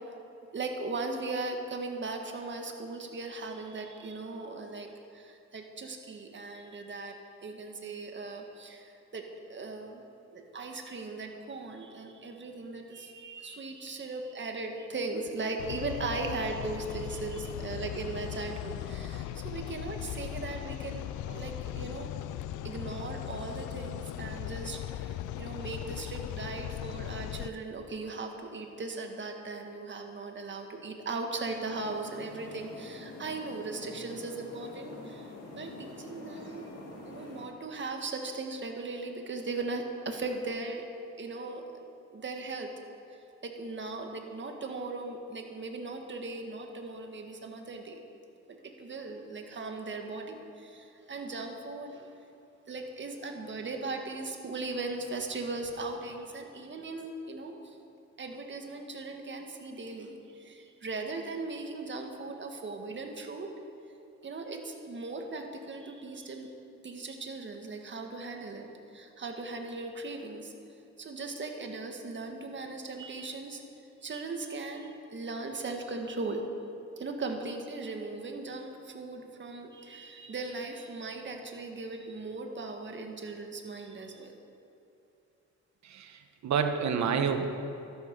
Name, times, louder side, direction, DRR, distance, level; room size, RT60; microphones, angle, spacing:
voice 1, 0.5-7.2 7.4-10.0 10.3-22.1 22.6-36.7 37.1-41.8 42.1-42.8 43.1-48.0 48.5-52.2 52.7-57.8 58.2-63.5 64.2-66.5 66.8-70.5 71.0-73.6 74.0-76.4 77.0-84.4, right 3 dB, 40° right, 3 dB, 1.8 m, -38 dB
sound 1, 15.6-27.5, left 12 dB, 85° left, 0.5 m, -38 dB
sound 2, 31.6-37.4, left 2 dB, 55° left, 3.5 m, -46 dB
voice 2, 85.8-87.5, right 6 dB, 65° right, 6 dB, 1.3 m, -29 dB
13.0 x 11.5 x 5.4 m, 2.7 s
cardioid pair, 90°, 30 cm